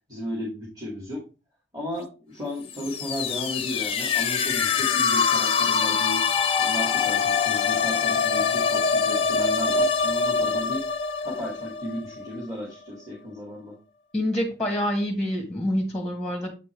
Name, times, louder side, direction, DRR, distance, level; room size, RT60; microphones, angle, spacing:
voice 1, 0.1-1.2 1.7-6.2 6.6-10.8 11.2-13.8, left 1 dB, 20° right, -5 dB, 2.5 m, -34 dB
sound 1, 2.7-12.4, left 5 dB, 30° left, 0.6 m, -24 dB
voice 2, 14.1-16.5, left 1 dB, 5° left, 2 dB, 1.2 m, -26 dB
8.0 x 5.2 x 3.4 m, 0.32 s
head